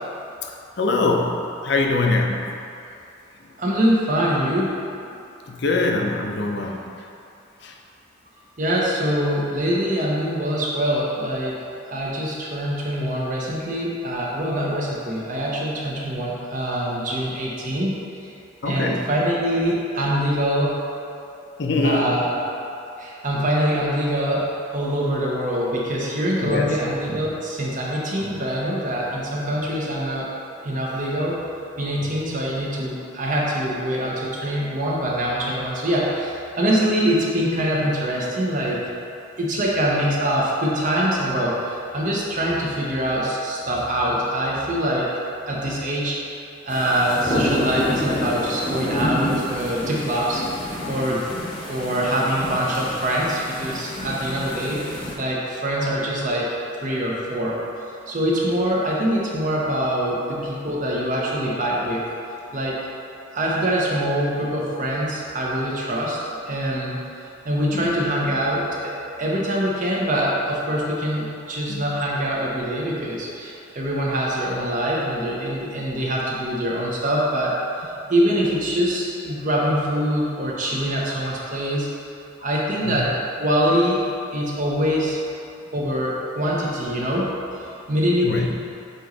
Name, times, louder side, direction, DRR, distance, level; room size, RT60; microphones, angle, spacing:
voice 1, 0.8-2.6 5.5-6.8 7.6-7.8 18.6-19.1 21.6-22.1 26.4-26.7 45.6-45.8 54.0-54.5 60.4-60.5 67.7-68.0 71.7-71.8 82.8-83.0 88.2-88.5, left 3 dB, 60° left, 1 dB, 0.6 m, -24 dB
voice 2, 3.6-5.0 8.6-18.0 18.6-20.8 21.8-22.4 23.0-24.4 24.7-30.3 30.6-31.4 31.8-38.8 39.4-45.1 45.5-50.5 50.9-51.3 51.7-56.5 56.8-57.6 58.1-62.0 62.5-62.8 63.3-66.2 66.4-67.0 67.4-77.6 78.1-81.9 82.4-84.0 84.3-85.2 85.7-87.3 87.6-88.6, equal, 40° right, -4 dB, 0.9 m, -24 dB
sound 1, 46.7-55.1, left 1 dB, 25° left, 0.9 m, -29 dB
7.8 x 3.1 x 3.9 m, 2.6 s
head